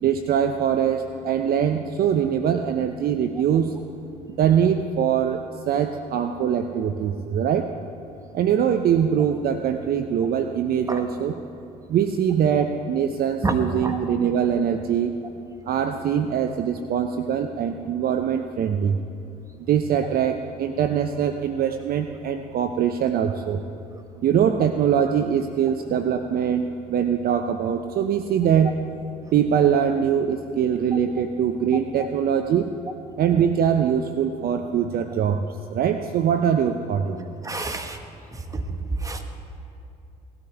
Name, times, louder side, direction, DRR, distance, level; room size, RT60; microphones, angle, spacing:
voice 1, 0.0-3.7 4.3-7.7 8.3-11.3 11.9-15.1 15.7-19.0 19.7-23.6 24.2-28.7 29.3-32.7 33.2-35.4 35.7-37.3, right 8 dB, 50° right, 7 dB, 0.6 m, -22 dB
voice 2, 37.4-38.0 38.3-38.6 39.0-39.2, right 3 dB, 15° right, 5 dB, 1.4 m, -28 dB
18.5 x 12.5 x 3.4 m, 2.6 s
hypercardioid pair, 60°, 21 cm